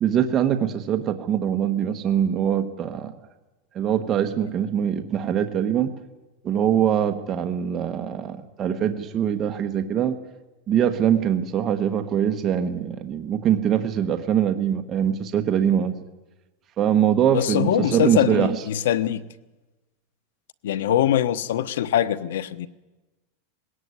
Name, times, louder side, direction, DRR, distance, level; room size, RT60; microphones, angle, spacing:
voice 1, 0.0-3.1 3.7-5.9 6.4-10.2 10.7-15.9 16.8-18.6, right 9 dB, 20° right, 6 dB, 1.1 m, -23 dB
voice 2, 17.3-19.3 20.6-22.7, left 11 dB, 80° left, 15 dB, 1.1 m, -23 dB
20.0 x 18.0 x 9.7 m, 1.1 s
supercardioid pair, 165°, 0 cm